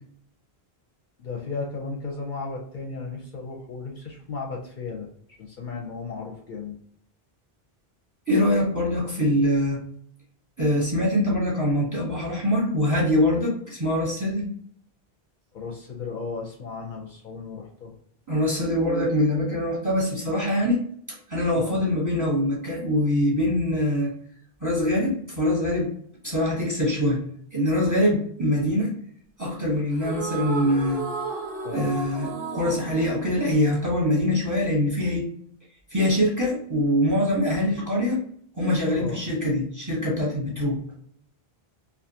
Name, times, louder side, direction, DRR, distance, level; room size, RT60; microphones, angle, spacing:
voice 1, 1.2-5.1 5.4-6.8 15.5-17.9 21.5-21.8 31.6-31.9 38.9-39.2, left 4 dB, 60° left, -1 dB, 0.6 m, -35 dB
voice 2, 8.3-9.8 10.6-14.5 18.3-20.8 21.1-24.1 24.6-25.9 26.2-27.2 27.5-28.9 29.4-31.0 31.7-35.3 35.9-38.2 38.6-40.8, left 1 dB, 20° right, -3 dB, 0.7 m, -23 dB
sound 1, 29.9-34.3, right 4 dB, 85° right, 0.9 m, -34 dB
2.5 x 2.4 x 2.7 m, 0.63 s
omnidirectional pair, 1.0 m